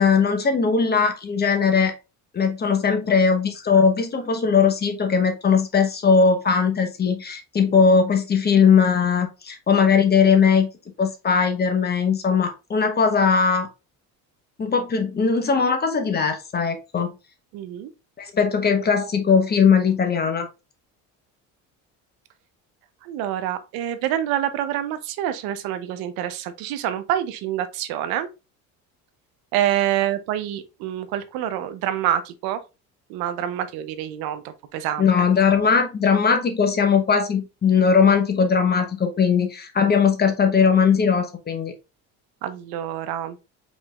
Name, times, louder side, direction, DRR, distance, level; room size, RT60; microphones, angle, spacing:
voice 1, 0.0-1.9 2.3-10.7 11.0-13.7 14.6-17.1 18.2-20.5 35.0-41.7, left 6 dB, 25° left, 0.9 m, -19 dB
voice 2, 17.5-17.9 23.0-28.3 29.5-32.6 33.1-35.1 42.4-43.4, right 11 dB, 85° right, 0.8 m, -26 dB
5.0 x 4.0 x 2.3 m
cardioid pair, 125°, 36 cm